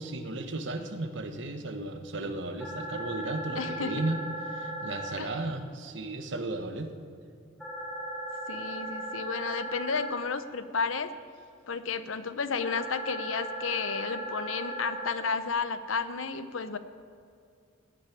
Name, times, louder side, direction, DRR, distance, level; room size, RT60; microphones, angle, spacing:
voice 1, 0.0-4.2 4.5-6.9, right 2 dB, 65° right, 7 dB, 1.1 m, -35 dB
sound 1, 2.6-5.1 7.6-10.1 12.6-15.1, right 1 dB, ahead, 3.1 m, -37 dB
voice 2, 3.6-3.9 5.2-5.3 8.5-11.1 11.7-16.8, left 5 dB, 80° left, 12 dB, 0.7 m, -32 dB
16.5 x 6.3 x 9.9 m, 2.4 s
head